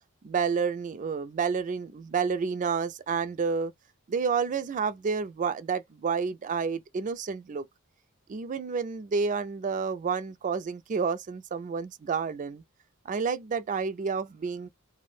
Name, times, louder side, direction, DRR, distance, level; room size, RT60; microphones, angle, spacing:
voice 1, 0.2-3.7 4.1-7.7 8.3-12.6 13.1-14.7, right 5 dB, 35° right, 0.3 m, -30 dB
2.4 x 2.0 x 3.1 m
head